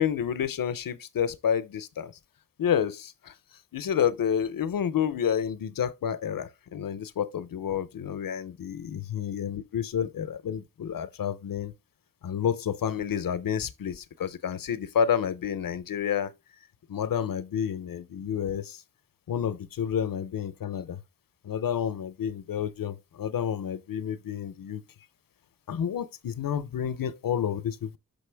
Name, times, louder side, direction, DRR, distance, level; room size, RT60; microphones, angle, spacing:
voice 1, 0.0-2.1 2.6-3.3 3.7-11.7 12.2-16.3 16.9-18.8 19.3-21.0 21.4-24.8 25.7-28.0, left 8 dB, 85° left, 0.6 m, -29 dB
6.8 x 5.2 x 3.3 m
cardioid pair, 60°, 33 cm